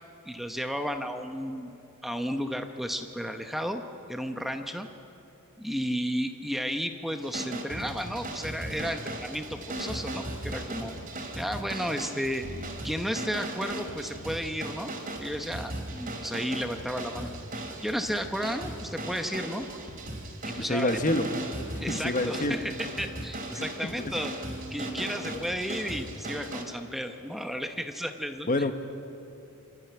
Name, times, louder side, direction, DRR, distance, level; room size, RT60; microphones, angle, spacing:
voice 1, 0.2-1.8 2.0-3.8 4.1-4.9 5.6-10.9 11.4-12.4 12.8-14.9 15.2-19.7 20.4-21.0 21.8-24.3 24.7-28.7, equal, ahead, 6 dB, 0.9 m, -33 dB
sound 1, 7.2-26.6, right 1 dB, 40° right, 3.0 m, -37 dB
voice 2, 20.6-21.2 21.9-22.6 24.0-24.1 25.3-25.4 28.5-28.7, left 1 dB, 35° left, 8 dB, 1.1 m, -27 dB
Wind instrument woodwind instrument, 21.8-27.5, left 1 dB, 90° right, 1.6 m, -48 dB
26.5 x 13.5 x 9.6 m, 2.9 s
head